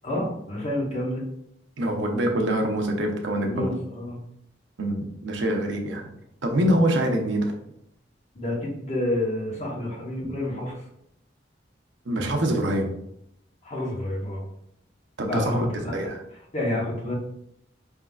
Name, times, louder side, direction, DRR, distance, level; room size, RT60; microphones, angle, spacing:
voice 1, 0.0-1.2 3.4-4.2 6.6-6.7 8.3-10.8 13.6-14.4 15.2-16.1 16.5-17.1, left 1 dB, 35° left, -2 dB, 1.1 m, -29 dB
voice 2, 1.8-3.7 4.8-6.0 6.4-7.5 10.2-10.3 12.1-12.9 15.2-15.7 15.9-16.2, right 1 dB, 75° right, 2 dB, 0.7 m, -25 dB
5.0 x 3.6 x 2.3 m, 0.76 s
head